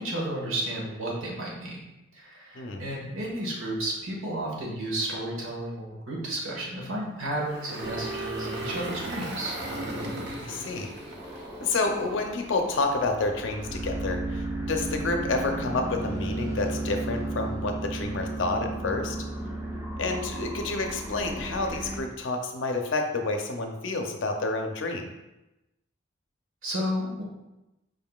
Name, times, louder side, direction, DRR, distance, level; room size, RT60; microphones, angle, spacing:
voice 1, 0.0-1.8 2.1-9.6 26.6-27.2, right 1 dB, 80° right, -3 dB, 1.3 m, -32 dB
Engine, 7.3-12.6, right 1 dB, 55° right, 0.7 m, -38 dB
sound 1, 7.8-22.0, right 2 dB, 15° right, 0.6 m, -35 dB
voice 2, 10.4-10.9 11.6-19.2 20.0-25.1, left 3 dB, 65° left, 4 dB, 0.5 m, -29 dB
5.2 x 3.7 x 2.3 m, 0.97 s
head